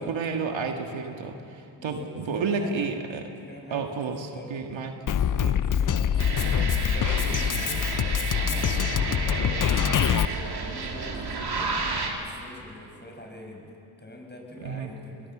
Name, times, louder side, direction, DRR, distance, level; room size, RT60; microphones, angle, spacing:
voice 1, 0.0-3.3 3.7-5.0 5.4-5.6 14.6-14.9, right 5 dB, 65° right, 4 dB, 1.8 m, -31 dB
voice 2, 1.8-2.9 3.4-4.5 5.2-15.3, left 1 dB, 20° left, 1 dB, 6.5 m, -44 dB
Drum kit, 5.1-10.2, left 9 dB, 40° left, 0.7 m, -25 dB
sound 1, 6.2-12.1, right 4 dB, 50° right, 3.1 m, -31 dB
21.0 x 18.5 x 7.3 m, 2.6 s
supercardioid pair, 50°, 49 cm